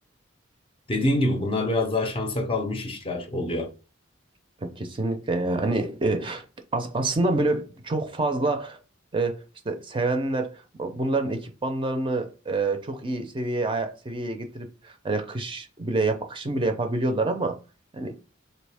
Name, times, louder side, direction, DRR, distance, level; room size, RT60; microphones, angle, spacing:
voice 1, 0.9-3.7, left 1 dB, 30° left, 0.5 m, -26 dB
voice 2, 4.6-6.5 6.7-8.8 9.1-17.6 17.9-18.2, right 2 dB, 25° right, 0.5 m, -27 dB
3.5 x 2.8 x 3.3 m
head